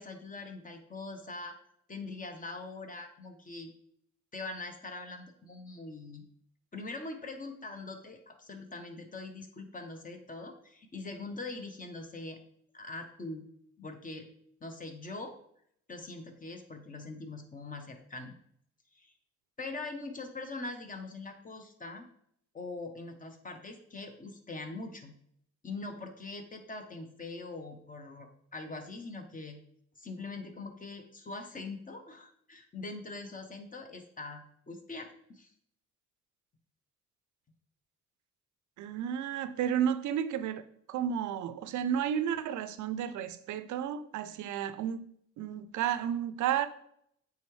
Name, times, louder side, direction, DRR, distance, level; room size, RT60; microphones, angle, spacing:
voice 1, 0.0-1.6 1.9-3.7 4.3-6.2 6.7-12.4 12.7-13.4 13.8-14.3 14.6-15.3 15.9-18.3 18.9-19.1 19.6-22.1 22.5-25.1 25.6-29.6 30.0-35.5, left 3 dB, 25° left, 1.0 m, -42 dB
voice 2, 38.8-40.6 40.9-45.1 45.4-46.7, right 9 dB, 70° right, 0.5 m, -32 dB
8.4 x 3.5 x 3.2 m
cardioid pair, 90°, 30 cm